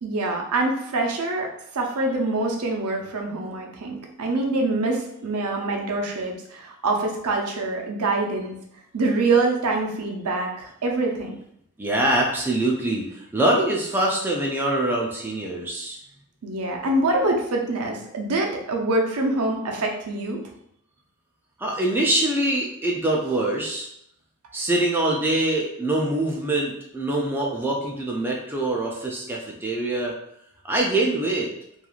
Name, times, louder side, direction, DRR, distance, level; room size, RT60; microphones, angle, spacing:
voice 1, 0.0-1.5 1.7-8.5 8.9-11.3 16.4-20.4, right 2 dB, 80° right, 1 dB, 0.5 m, -25 dB
voice 2, 11.8-16.0 21.6-23.9 24.5-30.1 30.6-31.5, right 1 dB, 10° right, -2 dB, 0.3 m, -24 dB
3.0 x 2.4 x 2.3 m, 0.75 s
head